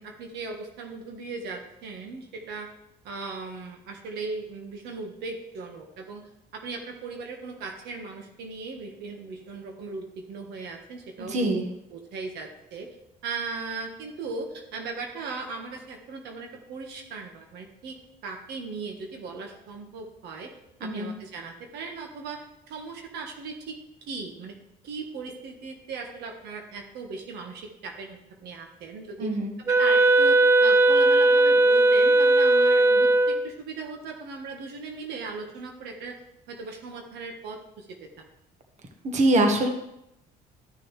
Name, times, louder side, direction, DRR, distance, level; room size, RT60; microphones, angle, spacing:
voice 1, 0.0-2.7 3.0-6.2 6.5-11.5 11.9-12.9 13.2-18.0 18.2-20.5 20.8-24.6 24.8-29.4 29.7-36.2 36.5-38.2, right 4 dB, 80° right, 3 dB, 1.5 m, -38 dB
voice 2, 11.2-11.6 20.8-21.1 29.2-29.5 39.0-39.7, right 1 dB, 45° right, 4 dB, 1.4 m, -23 dB
Wind instrument woodwind instrument, 29.7-33.5, right 2 dB, 15° right, 0.5 m, -18 dB
13.5 x 6.3 x 3.2 m, 0.83 s
cardioid pair, 110°, 17 cm